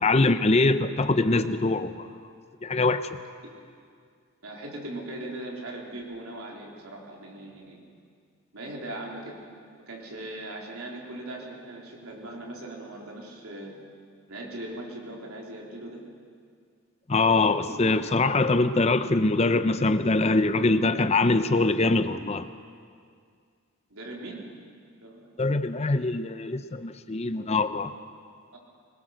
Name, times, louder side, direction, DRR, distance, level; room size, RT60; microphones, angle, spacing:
voice 1, 0.0-2.1 2.6-3.0 17.1-22.5 25.4-27.9, left 3 dB, 30° left, 11 dB, 0.6 m, -23 dB
voice 2, 4.4-7.8 8.5-9.4 9.9-13.8 14.3-16.0 17.6-18.1 23.9-24.5 25.0-25.3 28.5-28.6, right 1 dB, 90° right, -1 dB, 3.7 m, -39 dB
22.0 x 20.5 x 6.5 m, 2.2 s
head